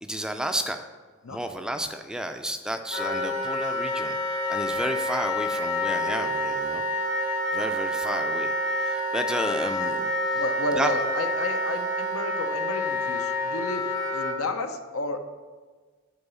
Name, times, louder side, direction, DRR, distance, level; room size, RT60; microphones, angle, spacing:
voice 1, 0.0-0.9 1.3-4.2 4.5-6.8 7.5-10.1 10.8-10.9, right 1 dB, 5° right, 6 dB, 0.4 m, -32 dB
Wind instrument woodwind instrument, 2.9-14.4, left 1 dB, 60° left, 1.4 m, -28 dB
voice 2, 10.3-13.8 14.1-15.2, left 2 dB, 90° left, 6 dB, 0.8 m, -31 dB
9.0 x 4.0 x 6.8 m, 1.4 s
head